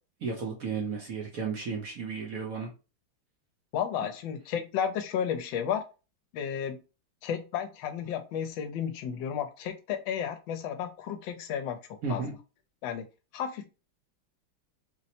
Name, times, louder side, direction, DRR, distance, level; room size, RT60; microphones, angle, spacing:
voice 1, 0.2-2.7 12.0-12.3, right 5 dB, 65° right, -1 dB, 0.9 m, -33 dB
voice 2, 3.7-5.8 6.3-6.8 7.2-11.8 12.1-12.2 12.8-13.1 13.3-13.7, left 8 dB, 75° left, 8 dB, 1.3 m, -32 dB
4.2 x 2.1 x 2.8 m, 0.31 s
omnidirectional pair, 2.2 m